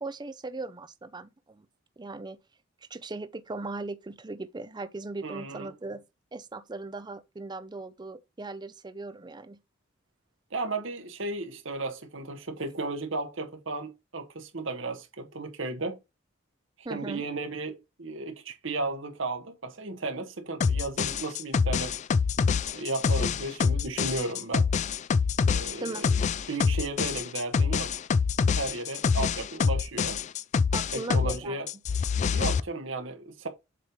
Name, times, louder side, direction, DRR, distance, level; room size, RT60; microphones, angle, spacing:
voice 1, 0.0-1.7 2.0-2.4 2.9-6.0 6.3-9.6 16.8-17.3 25.8-26.1 30.7-31.6, right 3 dB, 20° right, 0.5 m, -38 dB
voice 2, 5.2-5.7 10.5-16.0 16.9-21.9 22.7-24.7 25.5-26.1 26.5-27.9 28.6-30.2 30.9-31.7 32.3-33.5, right 3 dB, 70° right, 1.4 m, -34 dB
sound 1, 20.6-31.4 31.7-32.6, left 5 dB, 35° left, 0.3 m, -26 dB
7.6 x 3.2 x 5.1 m
head